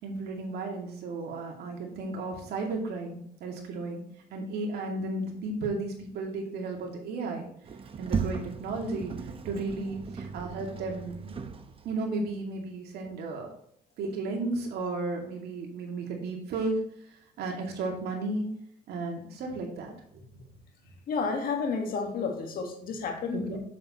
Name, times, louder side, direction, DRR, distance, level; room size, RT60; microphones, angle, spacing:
voice 1, 0.0-4.0 4.3-7.5 8.0-11.3 11.8-13.5 14.0-16.8 17.4-18.5 18.9-20.3 23.3-23.6, right 3 dB, 70° right, 1 dB, 2.4 m, -34 dB
Sliding door, 7.6-12.1, right 5 dB, 35° right, 0.8 m, -36 dB
voice 2, 21.1-23.5, left 4 dB, 60° left, 4 dB, 1.8 m, -31 dB
7.7 x 7.5 x 3.1 m, 0.68 s
cardioid pair, 110°, 17 cm